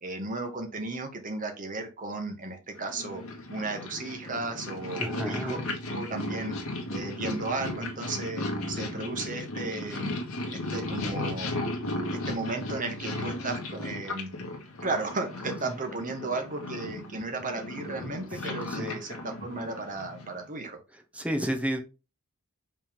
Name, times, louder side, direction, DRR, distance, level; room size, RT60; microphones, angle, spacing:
voice 1, 0.0-3.2 3.5-6.5 6.9-10.2 10.7-11.5 12.3-14.3 14.8-20.8, right 3 dB, 35° right, 5 dB, 1.4 m, -34 dB
Purr, 2.8-20.4, left 2 dB, 70° left, 1.8 m, -35 dB
voice 2, 5.0-5.6 15.7-15.8 18.8-19.0 21.1-21.8, right 1 dB, 5° right, 5 dB, 0.9 m, -31 dB
5.6 x 3.6 x 5.2 m, 0.29 s
head